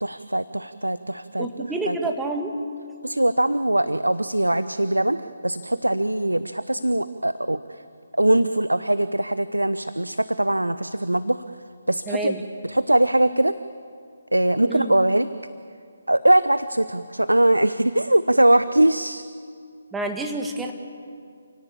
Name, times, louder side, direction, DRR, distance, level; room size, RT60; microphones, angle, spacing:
voice 1, 0.0-1.5 1.9-2.0 3.0-7.8 8.2-11.4 11.9-12.3 12.6-13.6 14.3-15.3 16.1-19.2, right 1 dB, 85° right, 13 dB, 0.7 m, -21 dB
voice 2, 1.4-2.5 12.1-12.4 14.7-14.9 19.9-20.7, right 2 dB, 5° right, 2 dB, 1.9 m, -28 dB
28.5 x 17.5 x 8.7 m, 2.3 s
figure-of-eight pair, 145°, 0 cm